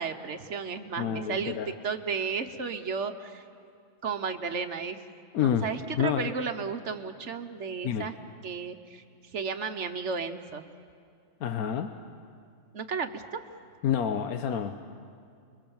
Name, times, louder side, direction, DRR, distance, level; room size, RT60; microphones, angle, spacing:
voice 1, 0.0-3.4 4.0-5.0 5.4-8.1 8.4-9.0 9.3-10.6 12.7-13.4, right 5 dB, 55° right, 8 dB, 1.2 m, -33 dB
voice 2, 1.0-1.7 5.3-5.7 6.0-6.3 7.8-8.1 11.4-11.9 13.8-14.8, left 9 dB, 80° left, 8 dB, 1.3 m, -28 dB
29.5 x 22.5 x 7.1 m, 2.4 s
omnidirectional pair, 1.5 m